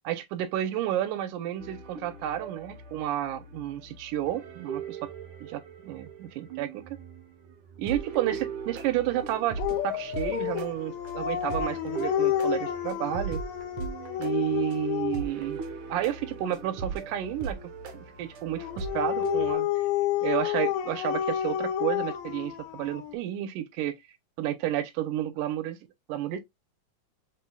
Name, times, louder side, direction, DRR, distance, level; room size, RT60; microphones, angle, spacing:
voice 1, 0.0-5.1 5.4-7.0 7.8-13.4 14.2-15.6 15.9-19.7 20.2-24.0 24.4-25.8 26.1-26.4, right 12 dB, 85° right, 2.3 m, -31 dB
sound 1, 1.6-19.5, right 5 dB, 70° right, 1.2 m, -39 dB
Dog, 9.6-15.4 18.6-23.2, left 11 dB, 80° left, 1.9 m, -30 dB
5.4 x 3.0 x 2.2 m
omnidirectional pair, 3.6 m